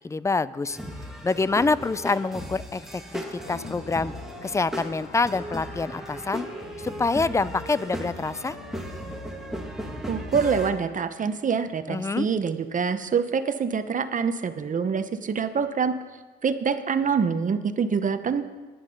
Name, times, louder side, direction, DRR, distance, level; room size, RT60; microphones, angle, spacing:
voice 1, 0.0-0.8 1.2-4.1 4.4-6.5 6.8-8.6 11.9-12.3, left 3 dB, 15° left, 18 dB, 0.4 m, -26 dB
sound 1, 0.7-10.7, equal, ahead, 1.7 m, -36 dB
sound 2, 3.4-9.7, left 4 dB, 85° left, 1.6 m, -46 dB
voice 2, 10.1-15.9 16.4-18.4, right 6 dB, 40° right, 10 dB, 0.8 m, -25 dB
10.5 x 10.5 x 5.3 m, 1.3 s
cardioid pair, 90°, 20 cm